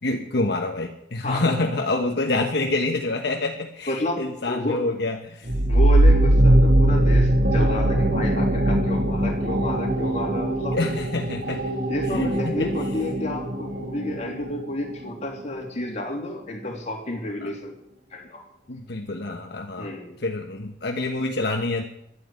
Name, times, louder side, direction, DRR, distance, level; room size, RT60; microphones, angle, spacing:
voice 1, 0.0-5.5 10.7-11.6 12.1-12.7 17.4-17.5 18.7-19.9 20.2-21.8, left 2 dB, 65° left, 2 dB, 1.3 m, -27 dB
voice 2, 3.9-4.9 5.7-10.8 11.9-17.7 18.1-18.4 19.8-20.2, left 1 dB, 40° left, 1 dB, 3.0 m, -30 dB
sound 1, 5.5-14.8, right 1 dB, 65° right, 2.2 m, -21 dB
12.0 x 9.4 x 9.3 m, 0.77 s
head